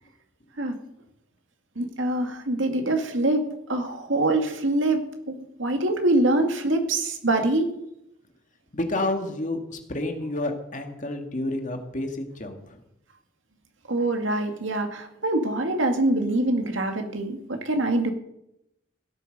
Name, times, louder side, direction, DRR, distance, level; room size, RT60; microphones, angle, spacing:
voice 1, 1.8-3.4 3.7-7.7 13.9-18.1, right 2 dB, 75° right, 5 dB, 2.1 m, -24 dB
voice 2, 8.7-12.8, left 1 dB, 40° left, 4 dB, 2.0 m, -30 dB
16.5 x 8.9 x 6.6 m, 0.82 s
head